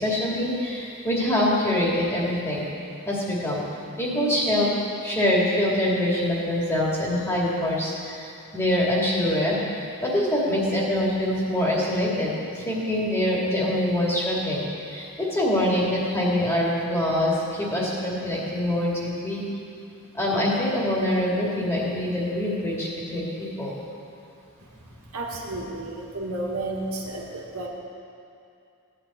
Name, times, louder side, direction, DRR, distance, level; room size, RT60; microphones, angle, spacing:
voice 1, 0.0-2.6 3.1-3.6 4.0-4.7 5.0-8.3 8.5-19.4 20.1-23.8, left 1 dB, 10° left, -6 dB, 2.4 m, -24 dB
voice 2, 25.1-27.7, right 2 dB, 85° right, -2 dB, 1.9 m, -32 dB
16.5 x 9.6 x 4.3 m, 2.6 s
head